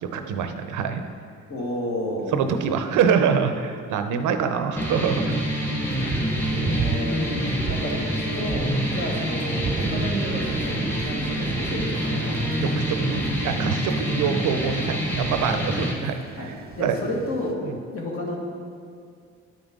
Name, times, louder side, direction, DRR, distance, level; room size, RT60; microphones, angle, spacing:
voice 1, 0.0-1.0 2.3-5.3 6.2-6.5 8.9-9.0 12.6-16.2 16.4-16.5 16.8-17.0 17.6-17.8, right 7 dB, 80° right, 8 dB, 0.6 m, -25 dB
voice 2, 1.5-2.4 6.5-7.3 7.6-12.4 14.2-14.3 16.4-17.6 17.9-18.4, left 1 dB, 50° left, -2 dB, 1.7 m, -32 dB
sound 1, 4.8-15.9, equal, 5° left, 1.2 m, -27 dB
Thunder, 5.9-17.5, right 4 dB, 30° right, 0.6 m, -33 dB
9.3 x 5.3 x 3.7 m, 2.3 s
cardioid pair, 90°, 30 cm